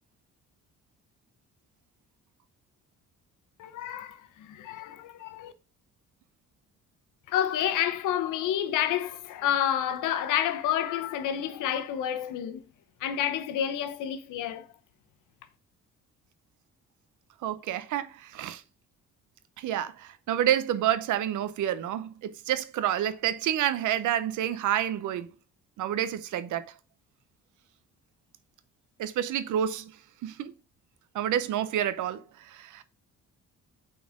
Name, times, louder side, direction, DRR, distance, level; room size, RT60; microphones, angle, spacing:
voice 1, 3.6-5.5 7.3-12.6 13.0-14.7, left 10 dB, 90° left, 0.9 m, -29 dB
voice 2, 17.4-18.6 19.6-25.3 25.8-26.6 29.0-29.9 30.2-30.5 31.1-32.8, right 11 dB, 80° right, 0.8 m, -29 dB
8.5 x 4.3 x 3.7 m
cardioid pair, 90°, 30 cm